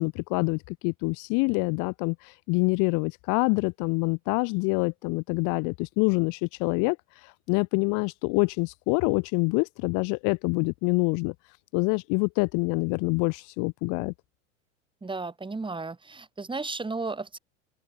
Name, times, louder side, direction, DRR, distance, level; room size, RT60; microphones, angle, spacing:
voice 1, 0.0-7.0 7.2-11.3 11.7-14.1, left 31 dB, 55° left, 2.0 m, -26 dB
voice 2, 15.0-17.4, right 3 dB, 15° right, 6.7 m, -34 dB
open air
hypercardioid pair, 95°, 36 cm